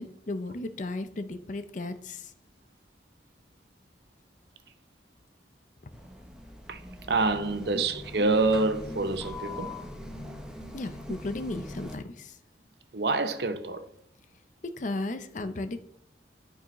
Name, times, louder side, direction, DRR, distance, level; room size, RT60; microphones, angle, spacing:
voice 1, 0.0-2.3 7.7-7.8 10.7-12.4 14.6-15.8, left 2 dB, 45° left, 0.5 m, -35 dB
sound 1, 5.9-12.0, left 2 dB, 5° right, 0.7 m, -42 dB
voice 2, 7.1-9.7 12.9-13.8, right 3 dB, 65° right, 0.7 m, -26 dB
11.5 x 4.7 x 3.1 m
head